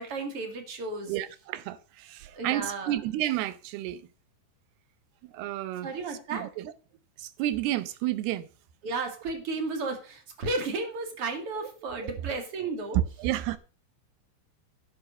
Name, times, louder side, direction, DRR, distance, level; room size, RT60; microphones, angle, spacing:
voice 1, 0.0-1.1 2.3-3.0 5.8-6.4 8.8-13.0, right 3 dB, 40° right, 2.7 m, -33 dB
voice 2, 1.1-4.1 5.2-6.7 7.2-8.5 11.6-11.7 12.2-12.4 12.9-13.6, right 14 dB, 85° right, 2.9 m, -31 dB
10.5 x 6.9 x 6.4 m
omnidirectional pair, 4.6 m